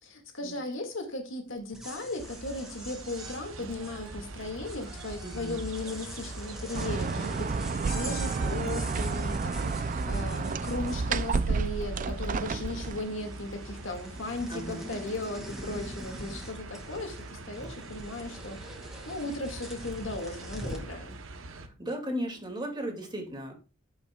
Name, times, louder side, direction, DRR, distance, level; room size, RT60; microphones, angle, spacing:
voice 1, 0.0-21.2, left 2 dB, 80° left, 2.1 m, -37 dB
sound 1, 1.6-11.6 11.9-12.6 12.9-20.9, equal, ahead, 2.2 m, -45 dB
sound 2, 2.2-21.7, right 2 dB, 85° right, 1.0 m, -44 dB
voice 2, 5.2-5.6 9.7-10.4 14.5-14.9 21.5-23.5, equal, 25° right, 2.4 m, -37 dB
sound 3, 6.7-13.0, right 4 dB, 40° right, 0.4 m, -30 dB
15.0 x 5.7 x 2.4 m
head